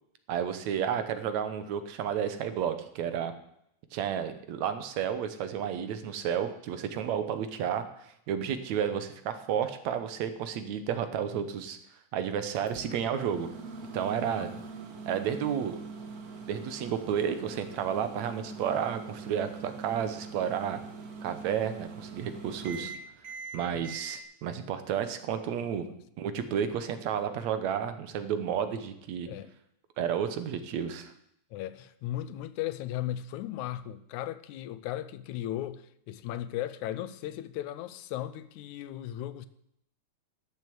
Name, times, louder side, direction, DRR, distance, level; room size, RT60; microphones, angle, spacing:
voice 1, 0.3-3.3 3.9-11.8 12.1-13.5 13.9-14.5 15.1-15.8 16.5-20.8 21.2-22.9 23.5-25.9 26.2-29.3 30.0-31.1, right 8 dB, 70° right, 2.2 m, -31 dB
Microwave oven, 12.7-24.2, right 4 dB, 45° right, 1.2 m, -43 dB
voice 2, 14.3-14.6 22.7-22.9 23.7-23.9 25.9-26.0 29.3-29.5 31.5-39.5, left 13 dB, 85° left, 2.1 m, -37 dB
12.0 x 7.2 x 7.8 m
omnidirectional pair, 3.4 m